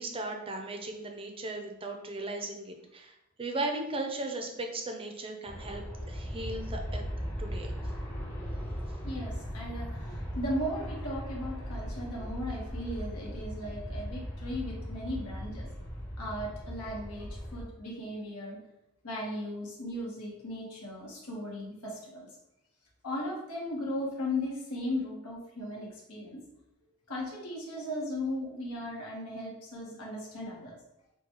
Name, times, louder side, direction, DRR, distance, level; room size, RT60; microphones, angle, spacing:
voice 1, 0.0-3.1 3.4-5.8 6.1-7.0 7.4-7.7, right 2 dB, 25° right, 3 dB, 0.6 m, -36 dB
Aircraft, 5.5-17.6, equal, 10° left, 0.8 m, -38 dB
voice 2, 9.0-15.7 16.2-18.6 19.0-22.3 23.0-26.4 27.1-30.8, left 1 dB, 75° left, -3 dB, 1.3 m, -37 dB
6.0 x 2.3 x 3.0 m, 0.86 s
head